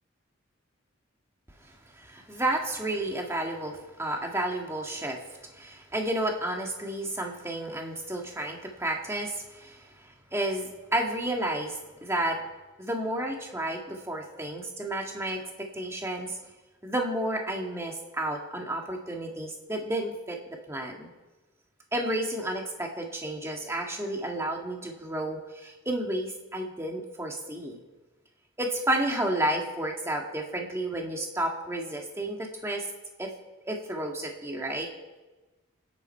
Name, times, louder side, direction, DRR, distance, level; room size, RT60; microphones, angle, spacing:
voice 1, 1.9-5.2 5.5-12.4 12.8-15.4 15.7-16.4 16.8-21.1 21.9-27.8 28.6-32.8 33.2-33.3 33.6-34.9, right 1 dB, 15° right, 1 dB, 1.8 m, -31 dB
24.5 x 10.0 x 4.6 m, 1.2 s
head